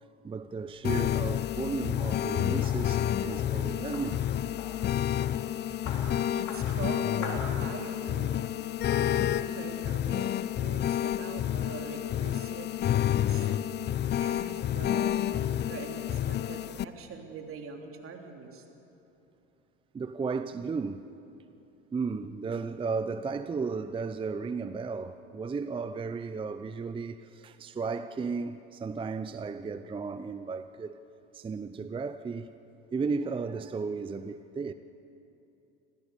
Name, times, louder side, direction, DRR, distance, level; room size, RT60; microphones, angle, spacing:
voice 1, 0.2-4.2 10.2-10.3 19.9-21.1 21.9-31.0 31.3-32.5 32.9-34.7, right 4 dB, 15° right, 0.6 m, -34 dB
sound 1, 0.6-8.1, left 4 dB, 75° left, 4.0 m, -46 dB
sound 2, 0.8-16.8, left 11 dB, 30° left, 0.6 m, -29 dB
voice 2, 6.0-8.5 8.9-10.3 10.6-13.5 14.2-18.6, right 5 dB, 40° right, 3.2 m, -43 dB
25.5 x 16.0 x 6.9 m
hypercardioid pair, 80°, 34 cm